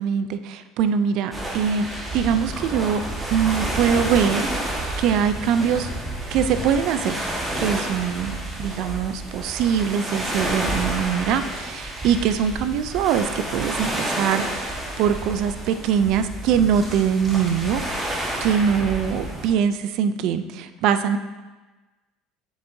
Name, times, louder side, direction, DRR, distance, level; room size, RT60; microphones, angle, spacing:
voice 1, 0.0-1.9 2.1-3.0 3.3-5.9 6.3-7.3 7.6-21.2, right 8 dB, 65° right, 11 dB, 0.4 m, -23 dB
sound 1, 1.3-19.5, right 1 dB, 15° right, 1.4 m, -30 dB
7.2 x 6.9 x 2.7 m, 1.2 s
supercardioid pair, 110°, 0 cm